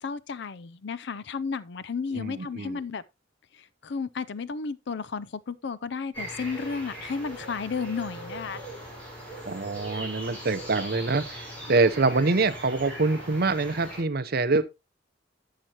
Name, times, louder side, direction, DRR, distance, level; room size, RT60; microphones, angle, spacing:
voice 1, 0.0-3.0 3.5-8.6, left 5 dB, 65° left, 0.5 m, -33 dB
voice 2, 2.1-2.8 9.4-14.6, right 3 dB, 55° right, 0.7 m, -25 dB
sound 1, 6.1-14.0, right 1 dB, 10° left, 4.8 m, -40 dB
11.5 x 7.6 x 2.9 m
head